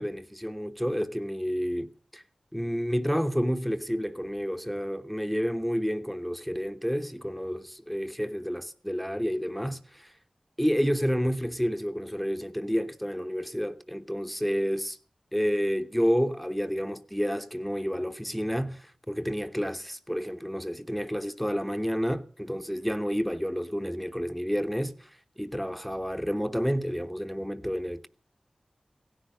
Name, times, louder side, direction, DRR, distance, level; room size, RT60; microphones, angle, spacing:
voice 1, 0.0-2.2 2.5-10.1 10.6-15.0 15.3-28.1, equal, ahead, 0.9 m, -30 dB
16.5 x 10.0 x 6.6 m
wide cardioid pair, 55°, 2 cm